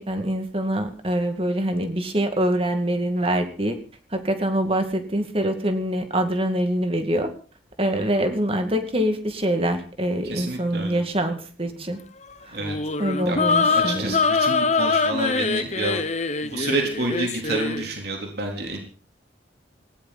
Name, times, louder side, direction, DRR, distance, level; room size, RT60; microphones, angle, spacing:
voice 1, 0.0-3.8 4.1-7.3 7.8-12.0 12.4-12.6 13.0-14.2, right 1 dB, 30° right, 7 dB, 2.3 m, -24 dB
voice 2, 10.2-11.0 12.5-12.8 13.3-13.4 13.7-16.0 16.4-18.8, right 2 dB, 60° right, 2 dB, 3.8 m, -29 dB
sound 1, 12.6-17.9, left 4 dB, 40° left, 1.1 m, -23 dB
18.5 x 16.5 x 4.3 m, 0.41 s
head